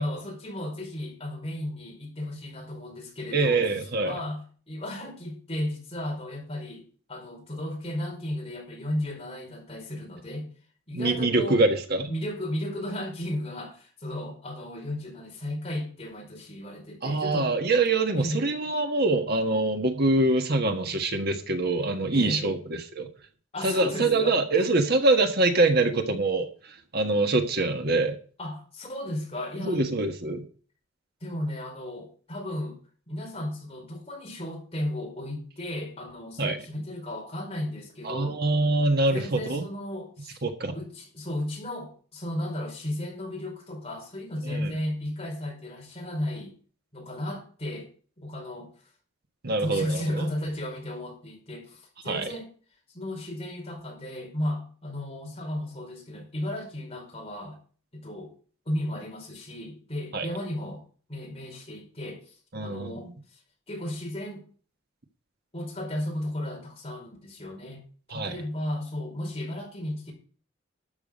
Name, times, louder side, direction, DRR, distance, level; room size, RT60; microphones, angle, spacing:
voice 1, 0.0-3.6 4.0-6.8 7.1-10.5 10.9-11.6 12.1-17.5 18.1-18.4 22.1-22.5 23.5-24.7 28.4-29.8 31.2-32.8 33.1-38.4 39.1-40.4 40.7-46.5 46.9-47.9 48.2-48.7 49.6-52.5 52.9-57.6 57.9-58.3 58.6-60.8 61.1-63.4 63.7-64.4 65.5-67.8 68.1-70.1, left 1 dB, 30° left, 0 dB, 4.9 m, -34 dB
voice 2, 3.3-4.2 10.9-12.1 17.0-23.1 23.6-28.2 29.6-30.4 36.4-36.6 38.0-39.7 40.4-40.7 44.4-44.7 49.4-50.2 52.0-52.3 60.1-60.3 62.5-63.1 68.1-68.4, right 2 dB, 50° right, 5 dB, 1.4 m, -25 dB
13.0 x 8.4 x 5.2 m, 0.42 s
head